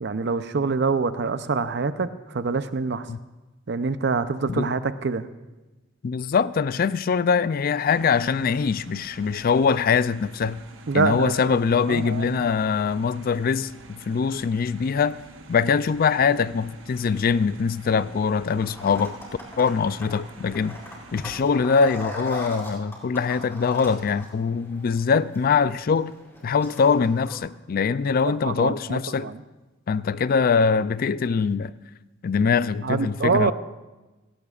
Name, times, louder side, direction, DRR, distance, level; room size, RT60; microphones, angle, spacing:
voice 1, 0.0-3.0 3.7-5.3 10.9-11.6 11.9-12.4 28.4-29.4 32.8-33.5, right 4 dB, 60° right, 0.6 m, -25 dB
voice 2, 6.0-10.6 10.9-15.2 15.5-19.2 19.6-20.8 21.1-26.1 26.4-29.3 29.9-31.7 32.2-33.5, left 5 dB, 50° left, 0.3 m, -23 dB
sound 1, 7.8-21.4, right 3 dB, 75° right, 1.0 m, -48 dB
sound 2, 18.6-27.4, equal, 15° left, 4.3 m, -41 dB
17.5 x 17.0 x 2.4 m
head